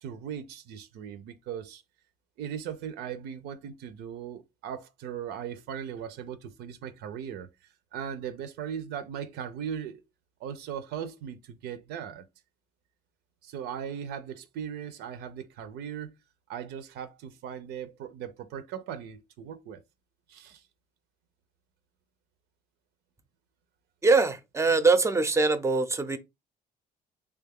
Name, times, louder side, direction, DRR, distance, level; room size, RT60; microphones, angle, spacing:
voice 1, 0.0-1.8 2.4-7.5 7.9-10.0 10.4-12.2 13.4-16.1 16.5-19.8 20.3-20.6, right 8 dB, 80° right, 0.5 m, -38 dB
voice 2, 24.0-26.2, right 3 dB, 15° right, 0.5 m, -23 dB
3.4 x 2.3 x 3.5 m
cardioid pair, 110°, 17 cm